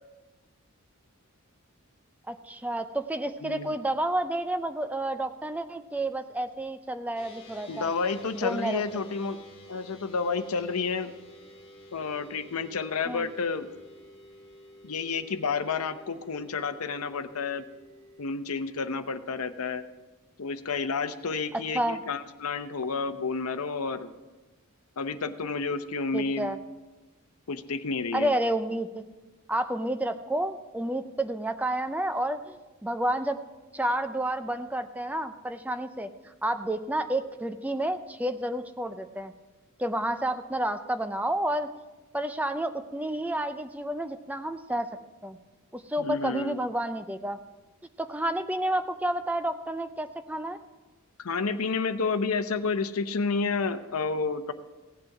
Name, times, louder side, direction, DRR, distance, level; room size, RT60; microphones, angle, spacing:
voice 1, 2.3-7.9 8.3-8.8 13.1-13.3 21.7-22.0 26.1-26.6 28.1-29.0 29.5-33.4 33.7-39.3 39.8-41.7 42.1-44.9 45.2-45.4 45.7-47.4 48.0-50.6, right 1 dB, 5° right, 9 dB, 0.5 m, -30 dB
voice 2, 3.4-3.8 7.7-9.4 9.7-11.1 11.9-13.7 14.8-17.6 18.2-19.8 20.4-24.1 25.0-26.5 27.5-28.3 46.0-46.6 51.2-54.5, left 4 dB, 80° left, 10 dB, 0.7 m, -30 dB
sound 1, 7.1-18.3, equal, 25° left, 1.6 m, -51 dB
16.5 x 7.9 x 4.8 m, 1.2 s
head